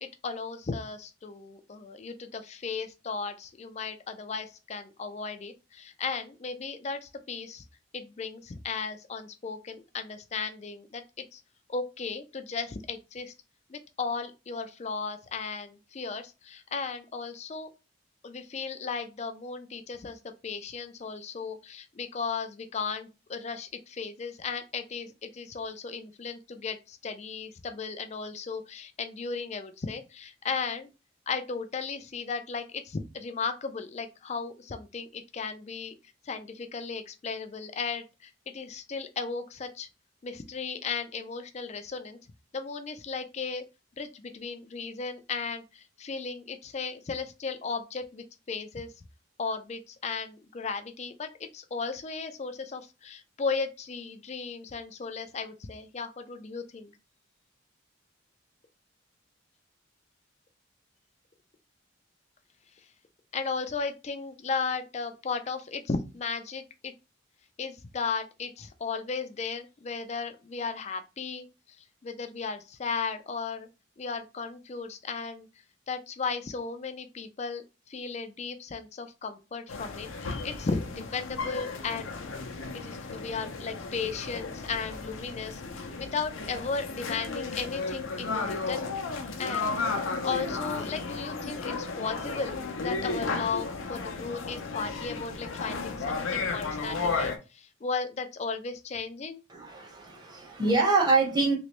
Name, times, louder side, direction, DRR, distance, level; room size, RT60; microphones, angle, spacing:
voice 1, 0.0-7.6 7.9-11.0 11.3-11.4 11.7-13.3 13.7-17.7 18.2-30.9 31.3-35.9 36.2-39.9 40.2-42.2 42.5-43.6 44.0-49.0 49.4-56.9 63.3-66.9 67.6-73.7 74.0-75.5 75.9-82.1 82.7-85.6 86.0-88.9 89.4-89.7 90.2-92.5 92.8-99.4, left 5 dB, 35° left, 0.4 m, -35 dB
sound 1, 79.7-97.4, left 4 dB, 85° left, 0.6 m, -34 dB
voice 2, 99.5-101.5, right 3 dB, 20° right, 0.9 m, -25 dB
3.1 x 3.0 x 3.0 m
head